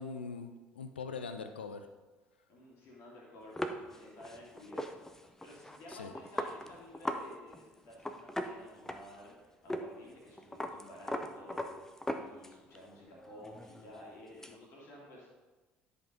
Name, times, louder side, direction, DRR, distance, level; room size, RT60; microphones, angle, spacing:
voice 1, 0.0-1.9 5.9-6.1, left 5 dB, 80° left, 8 dB, 0.5 m, -42 dB
voice 2, 2.5-15.3, left 1 dB, 55° left, -4 dB, 2.4 m, -53 dB
sound 1, 3.6-7.3 7.5-7.6 7.9-9.3 9.7-9.9 10.1-12.8 13.1-14.6, left 1 dB, 10° left, 0.7 m, -39 dB
10.5 x 5.3 x 3.8 m, 1.2 s
figure-of-eight pair, 55°, 6 cm